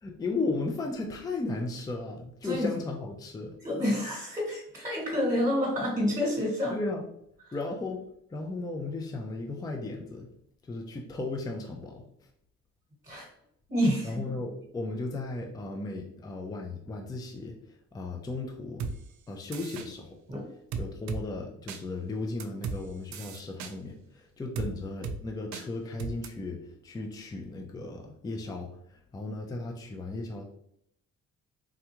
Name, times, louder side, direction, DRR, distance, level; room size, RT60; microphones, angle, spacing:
voice 1, 0.0-3.6 6.7-7.0 7.5-8.0 8.3-10.3 10.6-12.0 14.0-17.6 17.9-18.9 19.3-20.2 20.8-30.4, left 3 dB, 15° left, 1 dB, 0.4 m, -35 dB
voice 2, 3.6-6.8 13.1-13.3 13.7-14.2 20.3-20.5, left 1 dB, 20° right, -3 dB, 1.2 m, -28 dB
sound 1, 18.8-18.9 19.5-19.9 20.7-21.2 21.7-21.8 22.4-22.8 23.1-23.7 24.5-24.7 25.0-25.2 25.5-25.6 26.0-26.3, right 5 dB, 65° right, 0.4 m, -35 dB
3.5 x 2.3 x 2.9 m, 0.73 s
cardioid pair, 90°, 30 cm